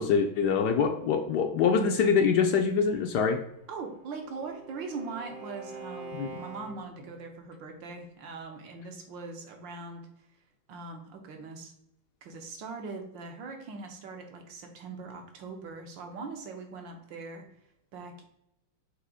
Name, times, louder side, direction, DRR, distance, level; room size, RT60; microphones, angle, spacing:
voice 1, 0.0-3.4 6.2-6.3, left 6 dB, 70° left, 5 dB, 1.0 m, -24 dB
Bowed string instrument, 3.5-7.1, right 2 dB, 60° right, 1.2 m, -45 dB
voice 2, 3.7-10.0 10.7-11.7 12.2-17.4 17.9-18.3, right 4 dB, 75° right, 4 dB, 1.7 m, -41 dB
6.6 x 3.0 x 4.8 m, 0.79 s
omnidirectional pair, 2.1 m